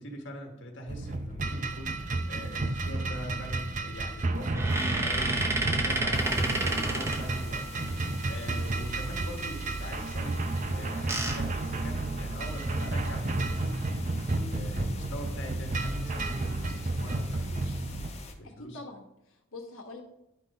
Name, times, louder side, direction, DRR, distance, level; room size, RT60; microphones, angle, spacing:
voice 1, 0.0-5.3 5.6-13.9 14.3-17.8 18.4-18.8, equal, 60° left, 2 dB, 1.3 m, -43 dB
sound 1, 0.9-18.1, right 2 dB, 35° right, 0.6 m, -32 dB
voice 2, 4.3-4.6 18.6-20.0, left 2 dB, 80° left, 1 dB, 1.3 m, -45 dB
sound 2, 4.4-7.9 10.6-12.5 13.1-13.2 13.4-13.6 15.1-15.4 16.0-16.6, right 2 dB, 15° right, 0.9 m, -31 dB
sound 3, 6.1-18.3, left 3 dB, 30° left, 1.0 m, -47 dB
10.5 x 3.9 x 5.3 m, 0.83 s
head